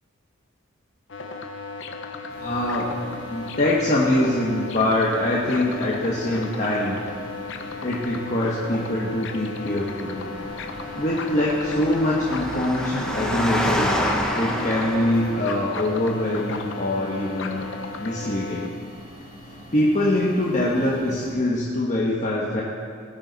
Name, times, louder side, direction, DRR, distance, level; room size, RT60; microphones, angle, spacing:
sound 1, 1.1-18.7, left 4 dB, 60° left, 0.9 m, -35 dB
sound 2, 2.3-21.3, left 1 dB, 45° right, 3.7 m, -44 dB
voice 1, 2.4-3.0 3.3-7.0 7.8-10.2 10.9-13.9 14.4-17.7 18.0-18.7 19.7-22.6, left 1 dB, 35° left, -5 dB, 1.4 m, -23 dB
Engine, 10.1-15.8, equal, 5° left, 1.1 m, -28 dB
20.0 x 9.7 x 4.1 m, 2.2 s
head